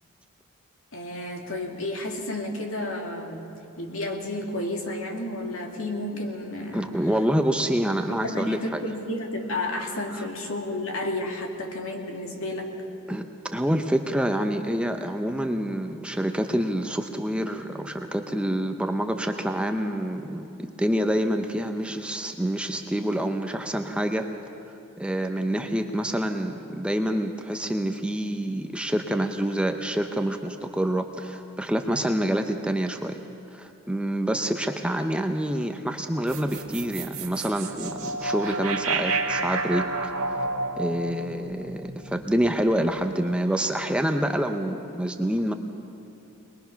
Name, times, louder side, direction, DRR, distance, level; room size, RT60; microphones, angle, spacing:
voice 1, 0.9-3.5 3.8-6.9 8.1-12.7, left 1 dB, 70° left, 1 dB, 2.3 m, -31 dB
voice 2, 6.7-8.8 10.1-10.2 13.1-13.3 13.5-24.3 25.0-33.2 33.5-40.1 40.8-45.5, right 1 dB, 5° right, 5 dB, 0.6 m, -27 dB
sound 1, 36.3-42.6, right 3 dB, 80° right, 1.6 m, -30 dB
22.0 x 21.0 x 5.8 m, 2.8 s
head